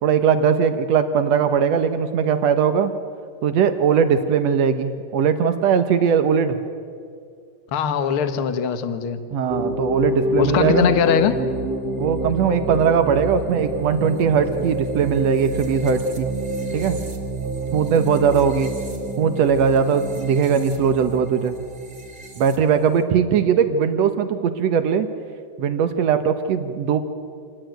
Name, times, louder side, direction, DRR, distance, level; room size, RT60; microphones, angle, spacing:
voice 1, 0.0-2.9 3.4-6.6 9.3-10.9 12.0-16.3 16.7-17.0 17.7-18.7 19.2-21.6 22.4-25.1 25.6-27.0, right 7 dB, 75° right, 9 dB, 1.5 m, -19 dB
voice 2, 7.7-9.2 10.4-11.4, left 7 dB, 75° left, 9 dB, 1.2 m, -21 dB
sound 1, 9.5-23.0, right 1 dB, 25° right, 2.0 m, -28 dB
27.0 x 19.0 x 9.2 m, 2.3 s
omnidirectional pair, 4.5 m